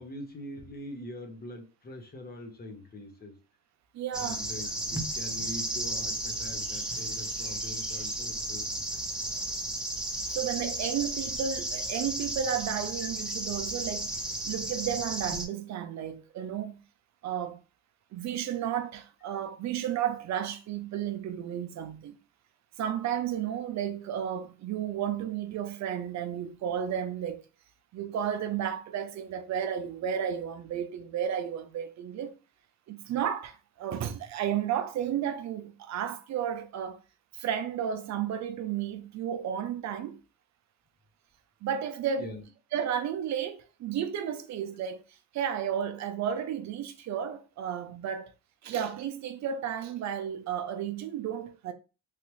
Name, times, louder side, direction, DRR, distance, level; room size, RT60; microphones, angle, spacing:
voice 1, 0.0-3.4 4.1-9.0 42.2-42.4, left 1 dB, 30° left, 0.9 m, -43 dB
voice 2, 3.9-4.4 10.3-14.1 14.4-16.8 17.2-17.6 18.1-22.2 22.8-27.4 27.9-32.3 32.9-37.0 37.3-40.2 41.6-42.3 42.7-45.0 45.3-48.3 48.6-51.7, right 9 dB, 65° right, 0.5 m, -33 dB
sound 1, 4.1-15.4, right 1 dB, 5° right, 0.8 m, -34 dB
3.2 x 2.4 x 3.1 m
cardioid pair, 90°, 30 cm